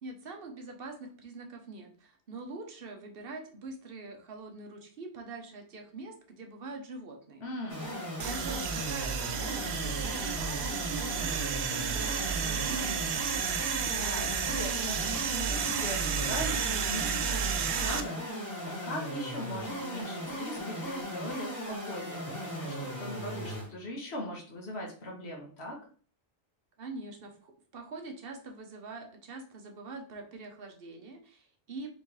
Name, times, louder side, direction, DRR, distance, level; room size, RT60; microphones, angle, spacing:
voice 1, 0.0-7.5 7.8-7.9 8.2-13.1 26.8-31.9, right 3 dB, 60° right, 3 dB, 1.1 m, -44 dB
voice 2, 7.4-7.9 13.7-22.2 22.5-25.8, left 1 dB, 80° left, -1 dB, 1.5 m, -40 dB
sound 1, 7.7-23.7, equal, 15° left, 2.1 m, -38 dB
sound 2, 8.2-18.0, right 7 dB, 85° right, 0.8 m, -32 dB
4.2 x 3.4 x 3.2 m, 0.43 s
omnidirectional pair, 1.1 m